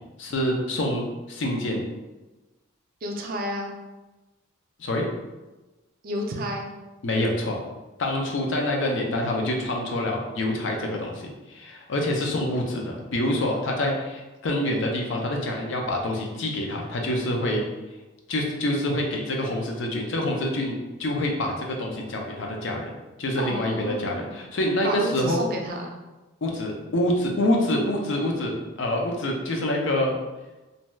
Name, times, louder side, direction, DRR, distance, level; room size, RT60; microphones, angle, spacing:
voice 1, 0.2-1.9 4.8-5.1 7.0-7.6 8.0-17.7 18.3-20.7 21.0-22.9 23.2-25.4 26.4-30.2, left 1 dB, 65° left, 1 dB, 0.5 m, -26 dB
voice 2, 3.0-3.7 6.0-6.7 23.4-24.4 24.8-25.9, equal, 45° right, 1 dB, 0.4 m, -31 dB
2.6 x 2.2 x 3.1 m, 1.1 s
head